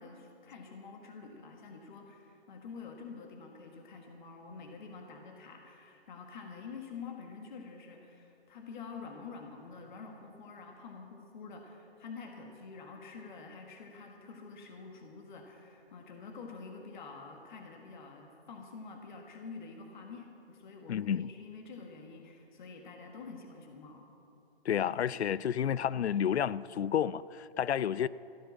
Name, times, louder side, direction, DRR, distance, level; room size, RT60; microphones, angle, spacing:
voice 1, 0.0-24.1, left 4 dB, 45° left, 1.7 m, -47 dB
voice 2, 20.9-21.3 24.7-28.1, left 9 dB, 85° left, 0.5 m, -30 dB
14.0 x 10.0 x 7.1 m
hypercardioid pair, 145°, 32 cm